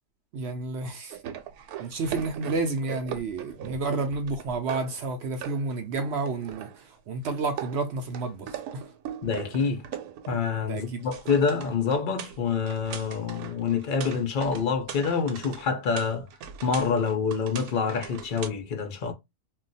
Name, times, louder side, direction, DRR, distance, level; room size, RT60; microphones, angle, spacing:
voice 1, 0.3-1.2 1.8-6.7 7.1-8.8 10.7-11.0, right 3 dB, 70° right, 0.6 m, -30 dB
sound 1, 1.1-5.1 5.4-6.9 7.3-10.6 10.8-18.5, right 9 dB, 85° right, 1.1 m, -40 dB
voice 2, 9.2-9.9 10.3-16.3 16.6-19.1, left 5 dB, 60° left, 0.5 m, -27 dB
2.3 x 2.2 x 3.9 m
omnidirectional pair, 1.5 m